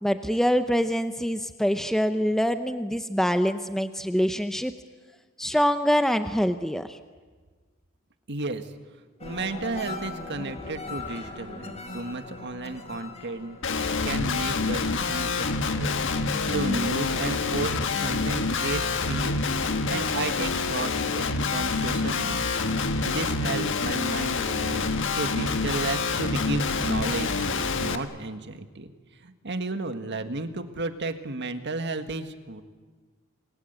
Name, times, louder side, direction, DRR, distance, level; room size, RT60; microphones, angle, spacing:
voice 1, 0.0-4.7 5.4-7.0, equal, ahead, 9 dB, 0.7 m, -25 dB
voice 2, 8.3-8.7 9.2-13.6 14.0-19.4 19.9-24.8 25.1-27.5 27.8-32.6, right 3 dB, 55° right, 8 dB, 1.8 m, -33 dB
sound 1, 9.2-18.0 18.4-18.9, left 2 dB, 30° left, 3.5 m, -41 dB
Guitar, 13.6-28.0, left 4 dB, 60° left, 1.5 m, -27 dB
28.0 x 22.0 x 8.2 m, 1.5 s
head